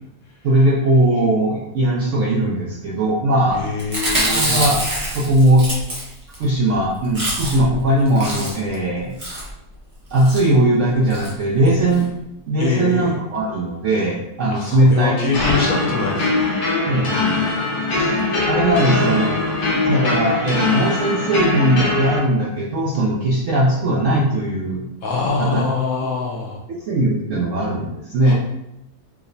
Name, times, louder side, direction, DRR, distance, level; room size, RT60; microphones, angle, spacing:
voice 1, 0.4-3.6 4.3-4.8 5.1-5.7 6.4-9.1 10.1-12.1 12.5-15.3 16.9-17.3 17.9-19.3 19.9-24.9 25.4-25.6 26.9-28.3, right 1 dB, 70° right, -4 dB, 0.7 m, -19 dB
voice 2, 3.5-4.8 12.6-13.2 14.5-16.7 25.0-26.6 28.2-28.3, left 4 dB, 65° left, -3 dB, 1.0 m, -24 dB
Chewing mastication, 3.8-6.4 6.7-6.8 7.0-7.7 8.0-8.7 9.2-9.5 10.1-10.4 11.1-11.3 11.6-11.7 11.9-12.0, right 1 dB, 35° right, 1.0 m, -25 dB
sound 1, 15.3-22.2, left 3 dB, 80° left, 1.5 m, -21 dB
4.7 x 2.1 x 2.6 m, 0.85 s
omnidirectional pair, 1.8 m